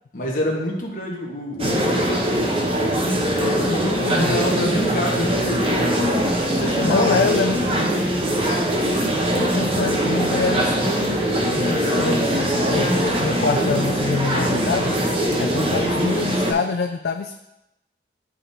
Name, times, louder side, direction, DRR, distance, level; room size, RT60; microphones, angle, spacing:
voice 1, 0.1-2.3 3.4-5.7 6.5-8.1, equal, 50° left, -1 dB, 1.3 m, -27 dB
sound 1, 1.6-16.5, right 1 dB, 30° right, 0.8 m, -21 dB
voice 2, 3.5-4.4 6.8-7.6 9.3-11.2 11.5-15.1 15.4-17.4, left 4 dB, 65° left, 5 dB, 0.3 m, -25 dB
11.0 x 3.7 x 2.7 m, 0.92 s
head